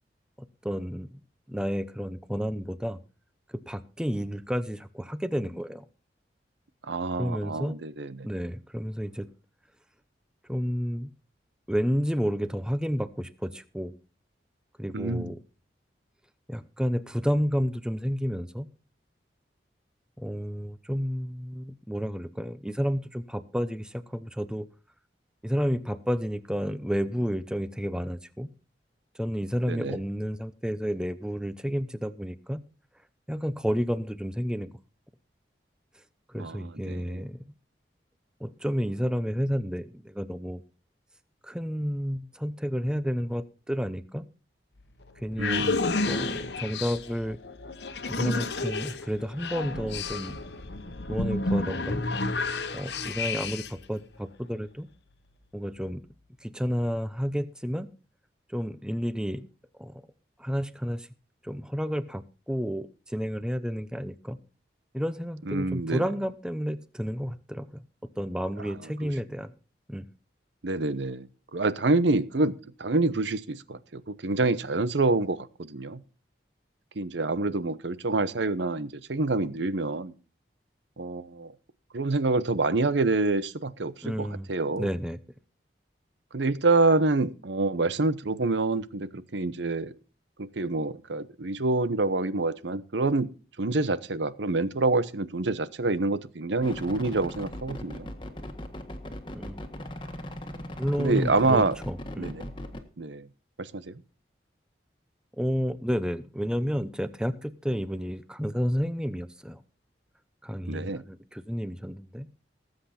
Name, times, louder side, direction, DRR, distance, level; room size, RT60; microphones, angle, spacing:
voice 1, 0.6-1.2 1.5-3.0 3.5-5.8 7.2-7.8 8.2-9.3 10.5-11.1 11.7-14.0 14.8-15.4 16.5-18.7 20.2-24.7 25.4-28.5 29.1-32.6 33.3-34.7 36.3-37.4 38.4-40.6 41.4-44.3 45.2-45.7 46.1-47.4 48.1-50.4 51.1-52.1 52.7-54.9 55.5-56.0 56.4-57.9 58.5-59.5 59.8-60.0 60.4-61.1 61.4-64.4 64.9-67.8 68.2-69.5 69.9-70.1 84.0-84.5 84.8-85.2 99.3-99.6 100.8-102.3 105.4-109.6 110.4-112.3, equal, 5° right, 13 dB, 0.7 m, -31 dB
voice 2, 6.8-8.3 14.9-15.3 29.7-30.0 36.4-37.2 45.4-45.8 65.5-66.0 69.0-69.1 70.6-76.0 77.0-80.1 81.0-81.5 81.9-84.9 86.3-89.9 90.4-93.3 93.6-98.1 101.0-101.8 102.2-102.5 103.0-103.3 103.6-104.0 110.7-111.0, right 3 dB, 85° right, 15 dB, 0.9 m, -27 dB
sound 1, 44.8-53.9, left 3 dB, 75° left, 1.2 m, -31 dB
sound 2, 96.6-102.8, left 1 dB, 25° left, 1.5 m, -39 dB
19.0 x 8.0 x 4.3 m, 0.35 s
head